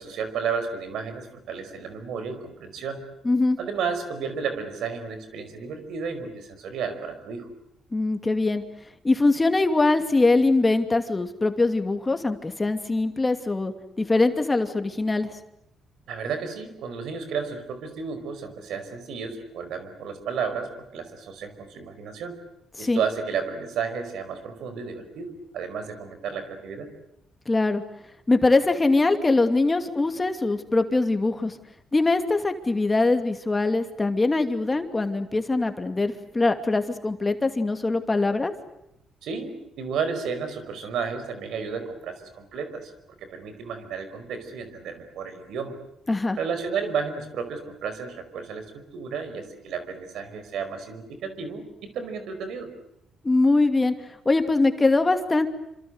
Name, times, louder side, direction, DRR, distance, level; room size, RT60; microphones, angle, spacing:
voice 1, 0.0-3.0 3.6-7.5 16.1-22.4 22.8-26.9 39.2-42.9 43.2-45.7 46.4-52.7, right 6 dB, 80° right, 9 dB, 5.1 m, -32 dB
voice 2, 3.2-3.6 7.9-8.6 9.0-13.7 14.0-15.3 22.8-23.0 27.5-27.8 28.3-31.6 31.9-38.5 46.1-46.4 53.2-53.9 54.2-55.5, left 3 dB, 20° left, 7 dB, 2.6 m, -22 dB
27.5 x 26.5 x 8.0 m, 0.81 s
cardioid pair, 90°, 0 cm